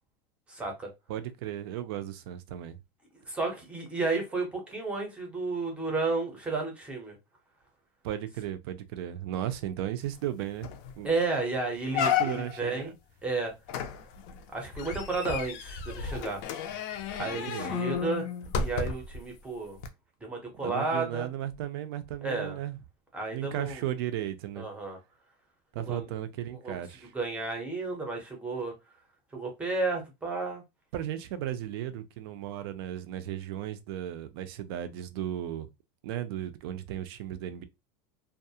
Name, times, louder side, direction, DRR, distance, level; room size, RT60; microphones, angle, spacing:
voice 1, 0.5-0.9 3.3-7.2 11.0-12.9 13.2-13.5 14.5-16.4 17.2-18.3 18.5-19.8 20.2-21.3 22.2-22.6 23.1-23.8 24.6-25.0 25.9-26.0 26.6-26.8 27.1-28.7 29.3-30.6, right 3 dB, 10° right, 0.6 m, -32 dB
voice 2, 1.1-2.8 8.0-10.7 11.0-11.1 11.9-12.9 17.2-17.8 20.6-22.8 23.3-24.7 25.7-27.1 30.9-35.7 36.0-37.6, right 11 dB, 65° right, 0.4 m, -35 dB
sound 1, 10.2-10.3 10.6-10.9 11.3-11.4 11.9-12.7 13.7-19.2 19.8-19.9, left 7 dB, 45° left, 0.3 m, -32 dB
2.3 x 2.0 x 2.6 m
supercardioid pair, 175°, 14 cm